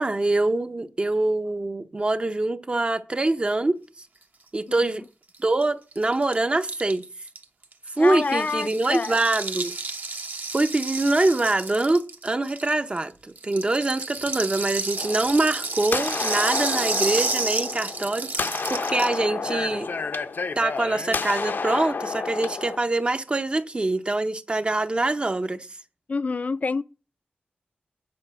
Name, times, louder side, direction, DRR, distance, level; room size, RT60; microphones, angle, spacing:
voice 1, 0.0-3.8 4.5-5.0 5.4-7.0 8.0-9.7 10.5-19.9 20.6-25.7, right 2 dB, 30° right, 0.6 m, -24 dB
Rattle (instrument), 5.3-5.4 5.6-5.7 5.9-13.0 13.4-19.2, right 3 dB, 60° right, 1.0 m, -31 dB
voice 2, 8.0-9.2 26.1-26.8, left 4 dB, 50° left, 0.4 m, -27 dB
sound 1, 15.0-22.8, left 4 dB, 75° left, 0.7 m, -30 dB
9.6 x 4.9 x 7.5 m
wide cardioid pair, 115°, 3 cm